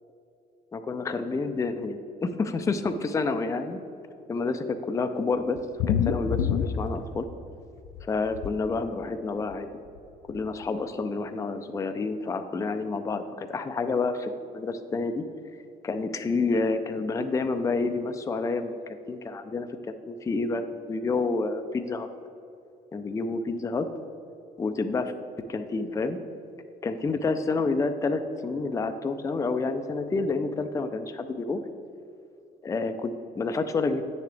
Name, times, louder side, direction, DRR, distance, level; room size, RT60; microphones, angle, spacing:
voice 1, 0.7-3.8 4.3-5.6 6.0-7.3 8.0-9.7 10.3-15.2 15.8-18.7 19.1-22.1 22.9-23.9 24.6-25.1 25.5-26.2 26.8-31.6 32.6-34.0, left 3 dB, 20° left, 8 dB, 0.4 m, -29 dB
sound 1, 5.6-7.6 7.9-8.5 9.5-9.6 10.0-10.1 10.3-10.4, left 8 dB, 75° left, 0.5 m, -27 dB
9.1 x 6.7 x 3.3 m, 2.6 s
cardioid pair, 110°, 17 cm